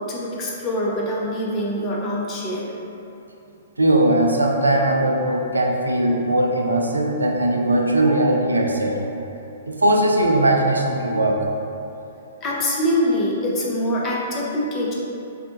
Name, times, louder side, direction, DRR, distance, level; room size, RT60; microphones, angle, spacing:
voice 1, 0.1-2.7 8.0-8.3 12.4-14.9, left 1 dB, 25° left, -4 dB, 0.6 m, -24 dB
voice 2, 3.8-9.0 9.7-11.4, right 1 dB, 85° right, 1 dB, 0.4 m, -19 dB
4.0 x 2.2 x 2.7 m, 2.9 s
figure-of-eight pair, 115°, 0 cm